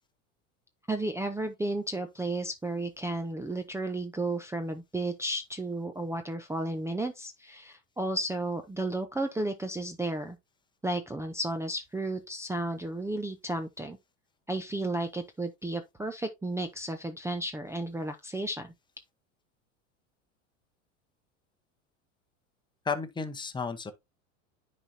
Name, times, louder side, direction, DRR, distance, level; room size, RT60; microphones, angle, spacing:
voice 1, 0.9-10.4 10.8-14.0 14.5-18.7, right 2 dB, 5° right, 0.6 m, -33 dB
voice 2, 22.8-23.9, left 5 dB, 10° left, 1.0 m, -33 dB
9.9 x 4.2 x 2.8 m
hypercardioid pair, 90°, 40 cm